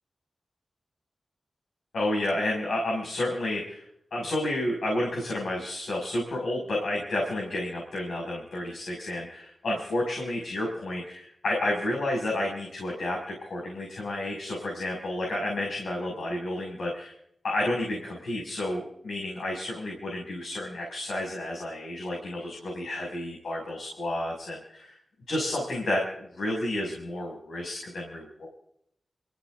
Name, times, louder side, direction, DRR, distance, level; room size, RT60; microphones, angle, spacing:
voice 1, 1.9-17.1 17.4-25.0 25.3-28.5, left 1 dB, 85° left, -2 dB, 6.3 m, -31 dB
27.0 x 16.0 x 2.7 m, 0.72 s
cardioid pair, 50°, 0 cm